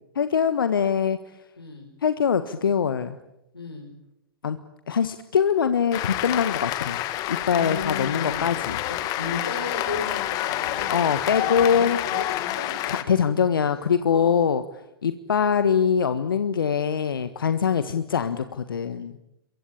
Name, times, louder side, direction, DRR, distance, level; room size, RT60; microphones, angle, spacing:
voice 1, 0.1-1.2 2.0-3.2 4.4-4.6 4.9-7.0 7.3-8.8 10.9-12.0 12.9-14.6 15.0-19.1, left 7 dB, 65° left, 11 dB, 1.5 m, -23 dB
voice 2, 1.6-1.9 3.5-3.9 7.5-8.5 8.9-11.0 11.4-13.0 14.1-14.4 17.6-17.9, left 4 dB, 85° left, 0 dB, 5.9 m, -35 dB
Cheering / Applause, 5.9-13.0, left 14 dB, 30° left, 1.9 m, -28 dB
28.0 x 23.5 x 8.8 m, 0.89 s
figure-of-eight pair, 110°, 12 cm